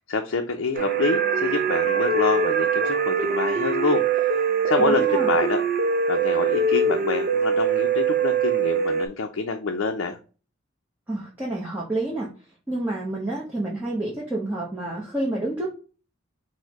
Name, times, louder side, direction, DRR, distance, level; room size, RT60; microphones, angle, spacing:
voice 1, 0.1-4.3 4.7-5.6 6.1-10.2, left 4 dB, 75° left, 3 dB, 0.5 m, -26 dB
sound 1, 0.7-9.1, right 5 dB, 45° right, 0.5 m, -23 dB
voice 2, 4.8-5.3 11.1-12.3 12.7-15.7, right 2 dB, 10° right, -6 dB, 0.8 m, -28 dB
4.4 x 2.1 x 4.5 m, 0.36 s
head